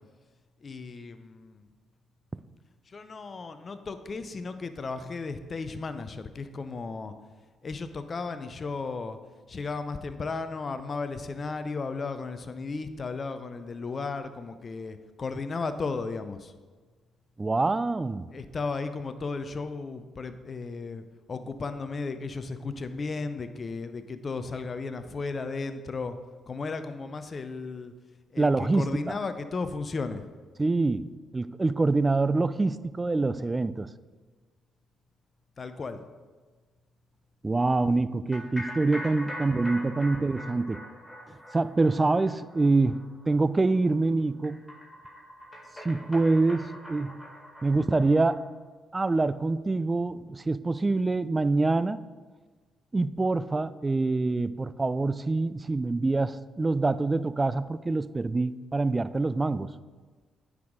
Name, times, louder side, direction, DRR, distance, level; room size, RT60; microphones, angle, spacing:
voice 1, 0.6-1.6 2.9-7.1 7.6-9.2 9.5-16.5 18.3-26.2 26.5-27.9 28.3-30.2 35.6-36.0, left 4 dB, 45° left, 10 dB, 0.5 m, -35 dB
voice 2, 17.4-18.3 28.4-29.2 30.6-31.1 31.3-33.9 37.4-40.8 41.5-44.6 45.8-47.2 47.6-48.4 48.9-52.0 52.9-59.7, right 3 dB, 25° right, 15 dB, 0.3 m, -25 dB
sound 1, 38.3-48.4, left 1 dB, 15° left, 1.9 m, -43 dB
9.4 x 4.8 x 3.6 m, 1.4 s
hypercardioid pair, 50°, 0 cm